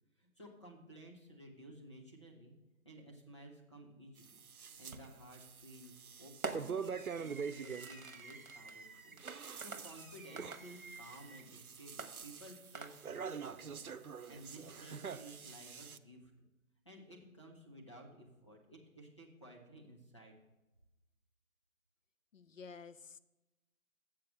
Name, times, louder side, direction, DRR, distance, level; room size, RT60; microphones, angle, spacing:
voice 1, 0.2-2.5 2.8-4.4 4.8-6.8 7.1-9.2 9.6-13.9 14.3-16.3 16.8-20.3, right 1 dB, 20° left, -2 dB, 0.9 m, -55 dB
sound 1, 4.2-5.0 5.3-7.9 9.0-16.0, right 6 dB, 85° right, 0.7 m, -45 dB
Fireworks, 4.9-5.3 6.4-11.5 12.0-13.3, right 4 dB, 70° right, 1.2 m, -48 dB
voice 2, 22.3-23.2, left 5 dB, 65° left, 13 dB, 0.7 m, -51 dB
7.6 x 7.5 x 6.5 m, 1.0 s
figure-of-eight pair, 170°, 43 cm